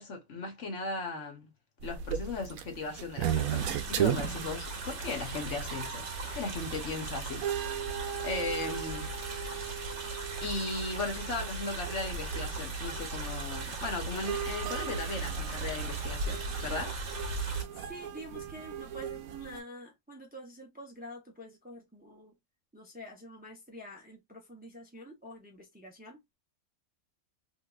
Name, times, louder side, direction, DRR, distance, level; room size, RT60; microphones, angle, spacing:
voice 1, 0.0-1.5 1.8-7.5 8.2-9.1 10.4-17.0, left 3 dB, 60° left, 1.2 m, -37 dB
sound 1, 1.8-19.6, right 10 dB, 80° right, 1.0 m, -38 dB
sound 2, 3.2-17.6, right 3 dB, 55° right, 1.3 m, -37 dB
voice 2, 8.2-8.6 17.7-22.3 22.7-26.2, equal, 10° right, 0.7 m, -47 dB
3.3 x 3.0 x 2.4 m
omnidirectional pair, 1.5 m